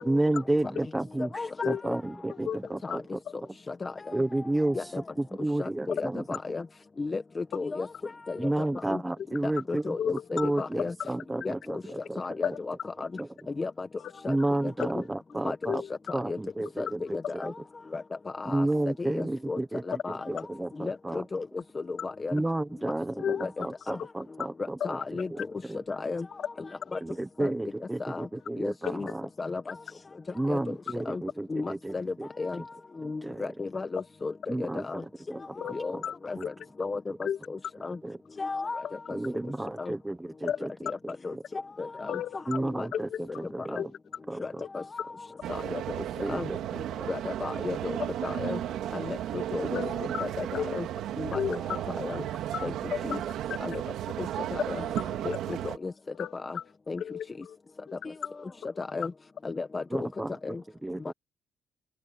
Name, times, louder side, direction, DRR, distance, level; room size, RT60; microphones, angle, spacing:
voice 1, 0.0-1.3 1.6-3.2 4.1-4.8 5.2-6.4 8.4-12.2 13.2-13.3 14.3-15.8 16.1-17.5 18.4-21.2 22.3-25.0 25.3-25.8 27.0-29.3 30.3-32.3 33.0-33.5 34.5-34.9 35.3-35.4 36.4-36.5 38.0-38.2 39.1-40.7 41.3-41.4 42.5-43.1 43.3-43.9 44.3-44.6 46.2-46.6 47.0-47.1 49.6-49.9 59.9-60.6 60.8-61.1, right 1 dB, 10° right, 0.7 m, -31 dB
voice 2, 2.4-3.0 10.0-10.7 11.0-11.1 11.9-12.0 12.4-12.5 14.0-14.1 15.6-15.9 23.2-23.4 24.0-24.1 24.8-24.9 28.8-29.0 35.6-35.7 36.0-36.1 36.4-36.5 37.2-37.4 38.8-38.9 40.4-40.6 42.1-42.4 42.9-43.4 43.8-43.9 44.6-44.7 49.7-50.8 51.3-51.8 52.1-52.3 52.5-53.3 54.7-54.8 55.3-55.4 56.2-56.6 57.0-57.6 57.9-58.0, left 9 dB, 60° left, 3.4 m, -34 dB
voice 3, 3.7-4.2 4.7-5.0 5.6-6.6 7.0-9.0 9.4-10.9 11.4-11.8 12.2-13.1 13.6-13.9 14.2-14.4 14.6-14.7 15.4-15.6 16.1-16.4 16.8-16.9 17.1-17.5 17.9-18.0 18.4-18.7 19.0-19.6 19.9-20.4 20.8-21.5 21.7-22.4 23.4-24.0 24.8-25.3 25.9-26.3 26.6-27.0 27.4-27.5 28.0-28.3 28.6-29.1 29.4-29.8 30.5-30.6 31.0-31.2 31.5-32.7 33.0-35.0 35.6-36.5 36.8-38.0 38.4-39.2 39.8-39.9 40.9-41.0 41.2-42.4 42.8-42.9 43.6-43.8 44.4-45.8 46.3-46.5 47.1-48.6 48.9-49.8 50.2-50.9 51.2-51.6 52.0-52.2 52.6-52.7 53.0-53.2 53.6-53.7 54.2-54.9 55.2-55.9 56.3-56.6 56.9-57.0 58.0-58.1 58.4-58.5 58.8-59.1 59.4-60.1 60.4-60.6, left 4 dB, 25° left, 0.9 m, -34 dB
sound 1, 45.4-55.8, right 12 dB, 80° right, 2.5 m, -34 dB
cardioid pair, 100°, 0 cm